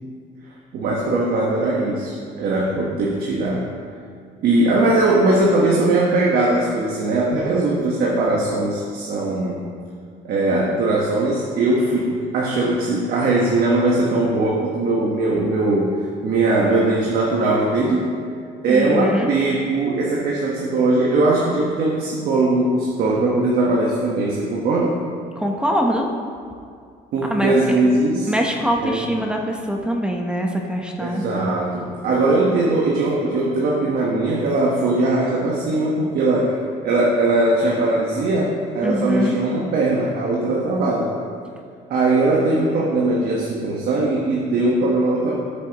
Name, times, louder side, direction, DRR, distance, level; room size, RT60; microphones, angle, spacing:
voice 1, 0.4-3.7 4.4-9.6 10.2-18.2 18.6-25.0 27.1-28.3 28.8-29.1 31.0-36.6 36.8-41.1 41.9-45.4, right 2 dB, 65° right, -3 dB, 1.2 m, -20 dB
voice 2, 18.7-19.3 25.4-26.1 27.3-27.5 28.3-31.2 38.8-39.4, equal, 5° right, 1 dB, 0.9 m, -23 dB
13.0 x 6.9 x 3.0 m, 2.2 s
cardioid pair, 110°, 17 cm